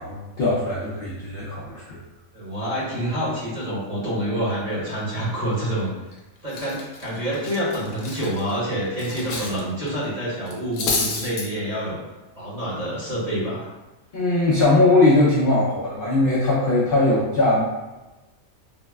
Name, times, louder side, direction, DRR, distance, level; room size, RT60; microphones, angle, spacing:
voice 1, 0.0-2.0 14.1-17.6, left 2 dB, 65° left, -6 dB, 0.5 m, -20 dB
voice 2, 2.3-5.9 6.4-12.0 12.3-13.7, right 1 dB, 30° right, -9 dB, 0.9 m, -27 dB
Cutlery silverware, 5.9-6.1 6.5-9.6 9.9-10.0 10.5-11.5, left 3 dB, 85° left, 1.1 m, -29 dB
3.8 x 2.0 x 2.2 m, 1.1 s
omnidirectional pair, 1.5 m